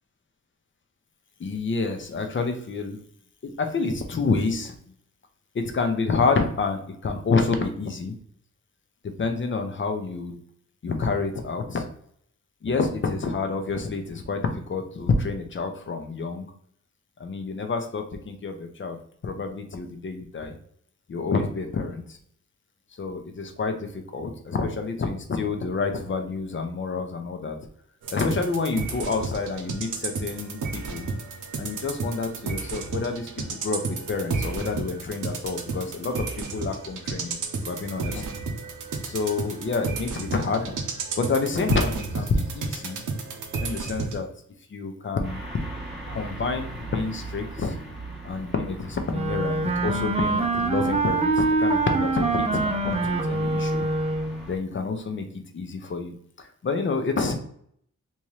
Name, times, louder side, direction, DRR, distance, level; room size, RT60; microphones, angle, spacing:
voice 1, 1.4-3.0 3.4-4.7 5.5-8.1 9.0-10.4 10.8-11.8 12.6-16.5 17.2-19.0 19.2-20.6 21.1-22.2 23.0-27.6 28.1-31.1 31.6-38.3 39.0-40.8 41.2-43.0 43.6-44.3 44.7-45.4 46.1-47.8 48.2-53.9 54.5-57.4, left 4 dB, 40° left, 6 dB, 0.6 m, -28 dB
sound 1, 28.0-44.2, right 4 dB, 85° right, 0.7 m, -32 dB
sound 2, 45.2-54.6, right 2 dB, ahead, 1.0 m, -40 dB
Wind instrument woodwind instrument, 49.1-54.5, right 3 dB, 20° right, 0.5 m, -25 dB
3.5 x 2.8 x 3.1 m, 0.65 s
wide cardioid pair, 145°, 30 cm